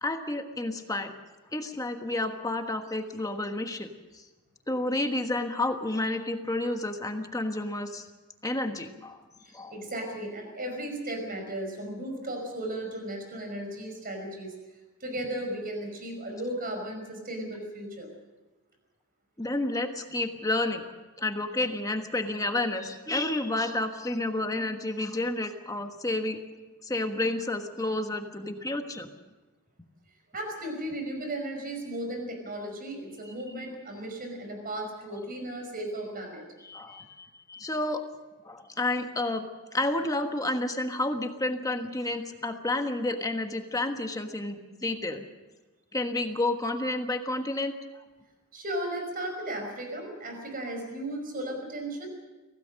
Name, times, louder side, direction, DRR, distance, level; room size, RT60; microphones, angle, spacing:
voice 1, 0.0-1.1 1.5-3.9 4.1-4.2 4.7-8.1 8.4-9.2 9.5-9.7 19.4-20.8 21.2-26.4 26.8-29.1 36.6-38.0 38.4-39.5 39.7-45.2 45.9-48.0, left 2 dB, 15° left, 6 dB, 1.4 m, -30 dB
voice 2, 9.4-14.5 15.0-18.1 30.3-36.4 36.9-37.1 48.5-52.1, right 1 dB, 40° right, 3 dB, 5.4 m, -35 dB
25.0 x 17.0 x 6.5 m, 1.2 s
head